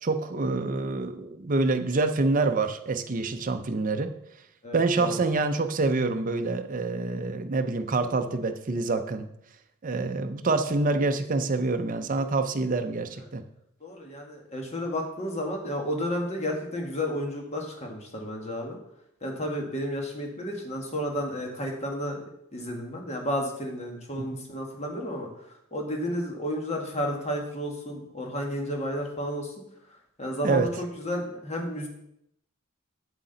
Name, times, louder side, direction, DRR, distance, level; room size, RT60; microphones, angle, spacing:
voice 1, 0.0-4.1 4.7-9.3 9.8-13.4 24.2-24.4 30.4-30.7, right 3 dB, 40° right, 7 dB, 0.6 m, -26 dB
voice 2, 4.6-5.1 13.8-18.8 19.2-22.2 22.5-29.5 30.2-31.9, equal, 30° left, 1 dB, 1.5 m, -32 dB
8.2 x 7.3 x 3.9 m, 0.77 s
head